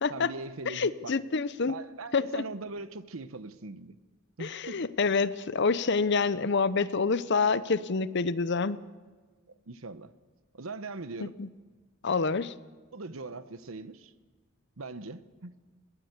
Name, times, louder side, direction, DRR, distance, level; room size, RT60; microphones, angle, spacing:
voice 1, 0.1-1.1 1.7-4.0 4.4-4.8 9.7-10.1 10.5-11.4 12.9-14.1 14.8-15.5, right 3 dB, 85° right, 1.0 m, -41 dB
voice 2, 0.7-1.7 2.1-2.4 4.4-8.8 11.2-11.5 12.0-12.5, left 4 dB, 55° left, 0.7 m, -27 dB
21.5 x 19.0 x 8.2 m
head